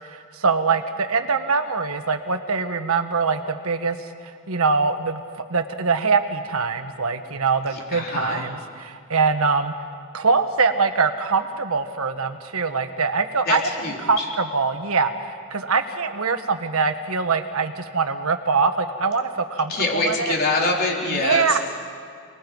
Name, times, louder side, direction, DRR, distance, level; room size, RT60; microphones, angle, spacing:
voice 1, 0.1-4.1 4.5-5.2 5.5-9.7 10.1-13.6 14.0-20.3 21.1-21.6, right 4 dB, 65° right, 8 dB, 1.4 m, -23 dB
voice 2, 7.7-8.5 13.5-14.3 19.7-21.6, left 3 dB, 45° left, -1 dB, 3.9 m, -25 dB
29.5 x 20.5 x 5.4 m, 2.3 s
head